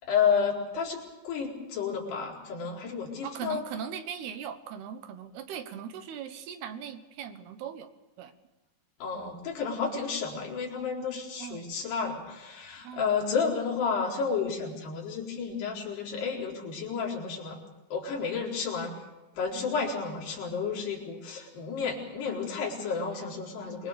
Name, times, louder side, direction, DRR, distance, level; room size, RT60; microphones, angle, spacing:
voice 1, 0.0-3.6 9.0-17.6 17.9-18.9 19.4-23.9, left 6 dB, 65° left, -2 dB, 6.3 m, -31 dB
voice 2, 3.2-7.9 8.2-8.3 9.2-9.4 11.4-11.7 12.8-13.1, right 8 dB, 70° right, 10 dB, 3.0 m, -39 dB
26.5 x 21.5 x 6.8 m, 1.0 s
omnidirectional pair, 5.0 m